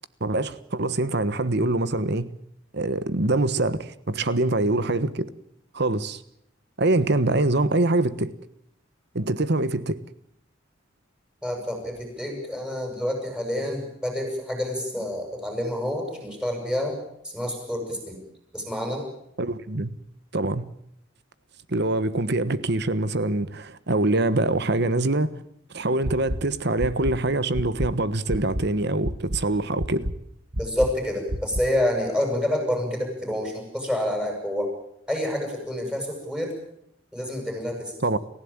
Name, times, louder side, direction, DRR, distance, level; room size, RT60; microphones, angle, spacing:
voice 1, 0.2-2.3 2.7-5.3 5.7-6.2 6.8-8.3 9.1-10.0 19.4-19.9 20.3-20.7 21.7-25.3 25.7-30.1 38.0-38.2, right 2 dB, 55° right, 1.3 m, -24 dB
voice 2, 11.4-17.0 17.2-18.2 18.5-19.0 30.6-34.7 35.1-36.5 37.1-37.9, left 1 dB, 5° right, 7.8 m, -28 dB
sound 1, 26.0-26.4 26.8-27.1 27.5-27.9 28.3-28.6 29.0-29.4 29.8-30.1 30.5-30.9 31.3-31.6, right 1 dB, 75° right, 1.6 m, -28 dB
29.5 x 15.5 x 9.0 m
head